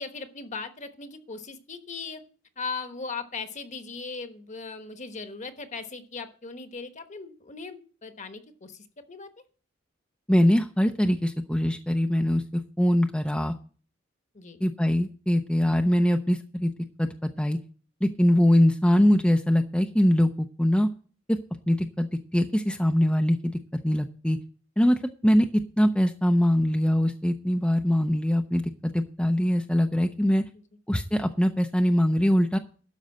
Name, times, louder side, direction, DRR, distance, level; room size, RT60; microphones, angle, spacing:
voice 1, 0.0-2.2 2.6-9.3 14.3-14.6, left 4 dB, 40° left, 8 dB, 1.1 m, -38 dB
voice 2, 10.3-13.5 14.6-16.7 17.0-17.1 17.4-17.6 18.0-20.9 21.3-21.4 21.7-23.5 23.8-24.4 24.8-25.5 25.8-30.4 30.9-32.6, equal, 5° left, 4 dB, 0.5 m, -22 dB
12.5 x 5.3 x 7.7 m, 0.41 s
head